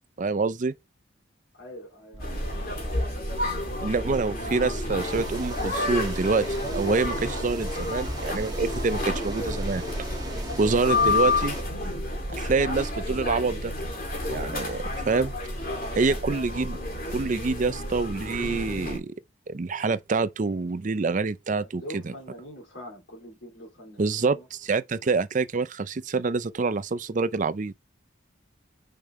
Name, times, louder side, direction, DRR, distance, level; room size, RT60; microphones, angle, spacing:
voice 1, 0.2-0.7 3.8-6.4 6.7-9.8 10.6-11.6 12.3-13.7 14.3-15.3 16.0-16.8 17.1-19.1 19.5-22.1 24.0-27.7, right 4 dB, 40° right, 0.5 m, -26 dB
voice 2, 1.5-3.1 10.3-10.7 15.8-16.6 21.5-24.5 25.0-25.1, equal, 80° left, 2.9 m, -44 dB
Wind, 2.1-13.4, right 1 dB, 80° right, 1.5 m, -42 dB
sound 1, 2.2-19.0, left 2 dB, 45° left, 2.6 m, -30 dB
sound 2, 5.0-11.6, right 2 dB, 20° right, 1.6 m, -39 dB
5.8 x 5.0 x 3.2 m
head